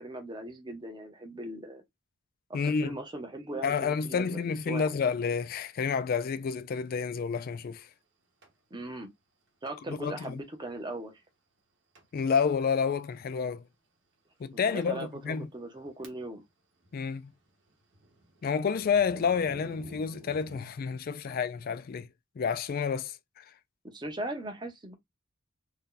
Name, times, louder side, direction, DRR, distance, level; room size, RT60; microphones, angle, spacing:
voice 1, 0.0-1.8 2.5-4.9 8.7-9.1 9.6-11.1 14.5-16.4 23.8-25.0, right 1 dB, 20° right, 0.8 m, -39 dB
voice 2, 2.5-3.0 3.6-7.9 9.9-10.4 12.1-13.6 14.4-15.5 16.9-17.3 18.4-22.1 22.4-23.4, left 6 dB, 45° left, 0.3 m, -29 dB
Thunder, 8.4-8.5 9.7-9.9 10.2-10.4 11.0-11.1 11.9-12.3 12.6-12.8 13.7-13.8 14.4-14.5 14.8-14.9 15.5-16.5 16.8-20.6, right 1 dB, 65° right, 1.0 m, -52 dB
2.7 x 2.3 x 3.7 m
head